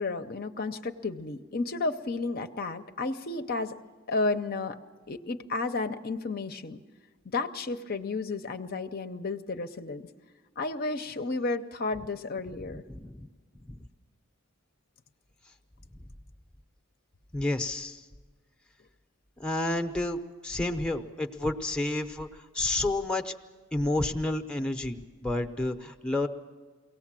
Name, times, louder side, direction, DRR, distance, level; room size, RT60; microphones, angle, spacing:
voice 1, 0.0-3.7 4.1-4.8 5.1-6.8 7.2-10.1 10.6-12.8, left 3 dB, 45° left, 8 dB, 0.7 m, -32 dB
voice 2, 12.7-13.3 13.7-13.8 17.3-18.0 19.4-23.3 23.7-26.3, left 2 dB, 5° left, 5 dB, 0.8 m, -30 dB
23.0 x 18.0 x 7.5 m, 1.4 s
head